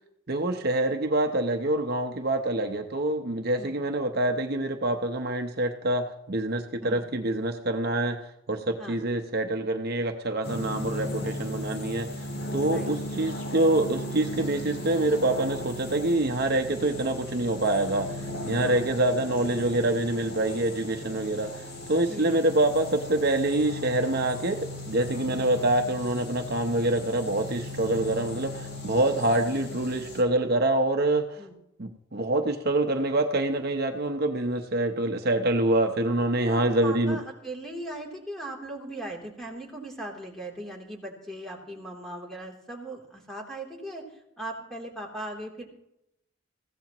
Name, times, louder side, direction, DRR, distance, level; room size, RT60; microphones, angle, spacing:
voice 1, 0.3-12.2 12.5-31.4 31.8-37.2, right 1 dB, 55° right, 5 dB, 0.9 m, -26 dB
sound 1, 10.4-30.2, left 1 dB, 60° left, 3.3 m, -37 dB
voice 2, 22.1-22.4 31.4-31.5 36.5-44.0 44.4-45.7, right 1 dB, ahead, -1 dB, 3.2 m, -38 dB
20.5 x 16.0 x 3.0 m, 0.82 s
head